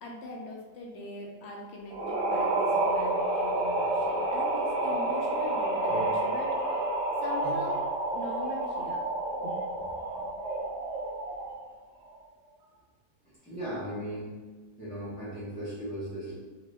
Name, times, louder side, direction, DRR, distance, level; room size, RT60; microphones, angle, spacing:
voice 1, 0.0-6.8 7.2-7.8 8.1-9.0 9.8-10.3, left 2 dB, 70° left, -1 dB, 0.6 m, -42 dB
sound 1, 1.9-11.6, right 2 dB, 65° right, 0.7 m, -29 dB
voice 2, 13.4-14.3 14.8-16.3, right 1 dB, 10° left, -13 dB, 0.6 m, -37 dB
2.8 x 2.6 x 3.2 m, 1.3 s
omnidirectional pair, 1.7 m